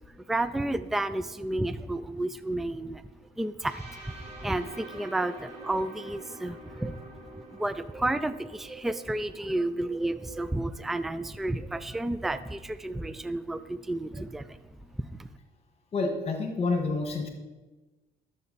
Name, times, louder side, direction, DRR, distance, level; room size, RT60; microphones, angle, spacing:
voice 1, 0.1-3.0 3.4-4.2 4.4-7.0 7.5-14.6, right 2 dB, ahead, 13 dB, 0.3 m, -31 dB
sound 1, 3.6-11.4, right 2 dB, 40° right, 2.4 m, -48 dB
voice 2, 15.9-17.3, left 3 dB, 40° left, 4 dB, 1.8 m, -28 dB
11.5 x 7.0 x 4.1 m, 1.2 s
cardioid pair, 110°, 17 cm